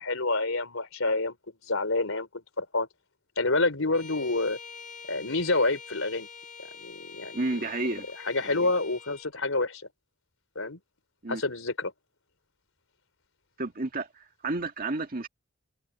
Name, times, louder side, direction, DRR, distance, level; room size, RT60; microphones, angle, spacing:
voice 1, 0.0-1.4 1.7-2.9 3.4-4.6 5.1-6.3 6.6-7.4 8.1-9.8 10.6-10.8 11.3-11.9, left 2 dB, 75° left, 4.1 m, -28 dB
Bowed string instrument, 3.9-9.3, left 5 dB, 40° left, 5.5 m, -46 dB
voice 2, 7.3-8.1 8.4-8.7 11.2-11.4 13.6-15.3, right 2 dB, 45° right, 1.9 m, -31 dB
head